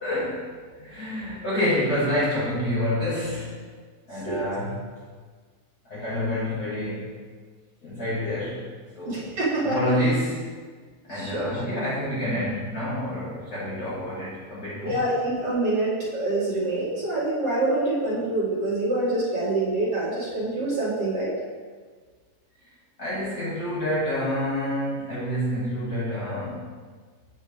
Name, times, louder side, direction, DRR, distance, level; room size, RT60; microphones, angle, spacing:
voice 1, 0.0-0.5 0.8-3.6 4.1-4.9 5.8-7.2 7.8-8.6 8.9-9.2 9.6-10.5 11.1-14.9 23.0-26.8, left 1 dB, 35° left, -10 dB, 2.1 m, -28 dB
voice 2, 4.1-4.5 9.1-9.9 11.1-11.5 14.8-21.3, right 2 dB, 55° right, -10 dB, 3.1 m, -26 dB
8.9 x 5.2 x 3.4 m, 1.5 s
omnidirectional pair, 3.5 m